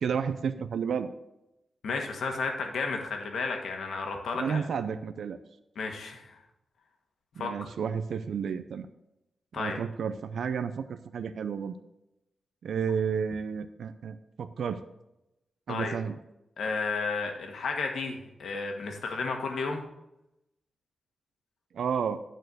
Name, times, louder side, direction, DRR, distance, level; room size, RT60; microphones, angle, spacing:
voice 1, 0.0-1.1 4.3-5.4 7.4-8.9 9.6-11.7 12.6-14.8 15.7-16.2 21.7-22.2, right 6 dB, 75° right, 10 dB, 0.5 m, -31 dB
voice 2, 1.8-4.6 5.7-6.4 7.4-7.7 9.5-9.8 15.7-15.9 16.6-19.8, left 4 dB, 80° left, 3 dB, 1.5 m, -32 dB
10.5 x 4.5 x 6.3 m, 0.91 s
wide cardioid pair, 145°, 0 cm